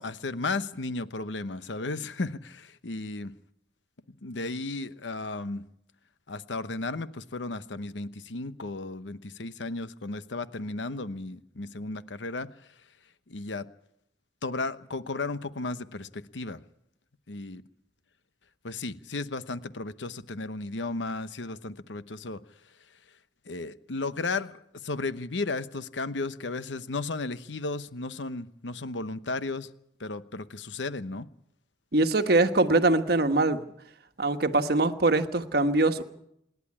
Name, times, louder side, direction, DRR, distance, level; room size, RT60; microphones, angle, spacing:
voice 1, 0.0-3.3 4.2-5.6 6.3-12.5 13.3-13.7 14.4-16.6 17.3-17.6 18.6-22.4 23.5-29.7 30.0-31.3, left 3 dB, 85° left, 13 dB, 1.0 m, -34 dB
voice 2, 31.9-33.6 34.2-36.0, right 2 dB, 60° right, 8 dB, 1.3 m, -23 dB
27.0 x 11.0 x 9.8 m, 0.77 s
head